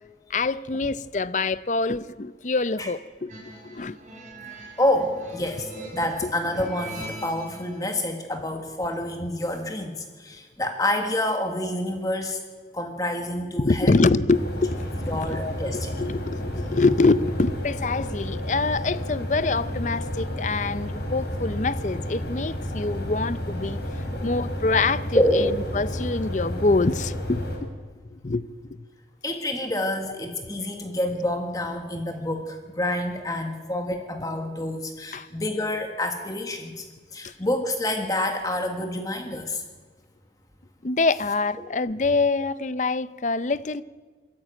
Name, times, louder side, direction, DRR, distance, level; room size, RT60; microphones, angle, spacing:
voice 1, 0.3-3.3 3.6-4.0 13.6-14.8 15.3-15.5 16.0-23.8 24.2-27.7 28.2-28.4 35.1-35.3 40.8-43.8, left 3 dB, 40° left, 0.6 m, -25 dB
sound 1, 3.3-7.8, right 1 dB, 45° right, 7.5 m, -41 dB
voice 2, 4.8-12.4 12.7-13.9 15.1-16.0 24.1-24.2 25.1-25.6 29.2-36.9 37.1-39.6 41.6-41.7, left 1 dB, 20° left, 1.6 m, -27 dB
sound 2, 14.3-27.6, equal, 65° left, 5.1 m, -31 dB
22.0 x 14.0 x 8.9 m
head